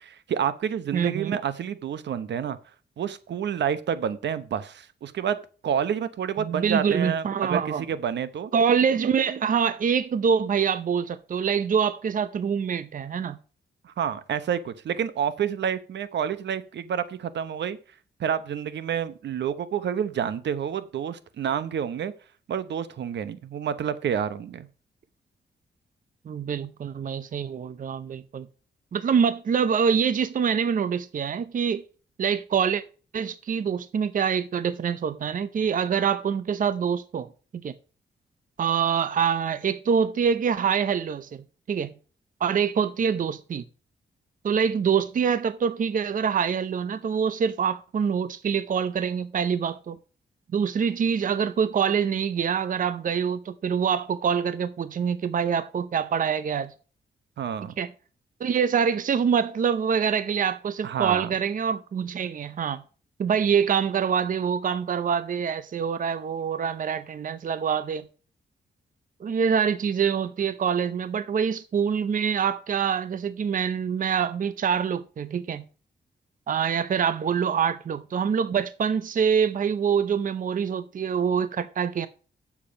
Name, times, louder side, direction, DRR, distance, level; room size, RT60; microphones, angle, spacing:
voice 1, 0.0-2.6 3.0-5.4 5.6-8.5 13.8-17.8 18.2-22.1 22.5-24.7 57.4-57.7 60.8-61.3, right 8 dB, 80° right, 1.0 m, -29 dB
voice 2, 0.9-1.4 6.4-7.8 8.5-13.4 26.3-28.5 28.9-31.8 32.2-32.8 33.1-37.3 37.6-37.7 38.6-41.9 42.4-43.7 44.4-50.0 50.5-56.7 57.8-57.9 58.4-62.8 63.2-68.1 69.2-75.7 76.5-82.1, right 7 dB, 50° right, 0.6 m, -25 dB
8.7 x 7.3 x 5.2 m
cardioid pair, 100°, 18 cm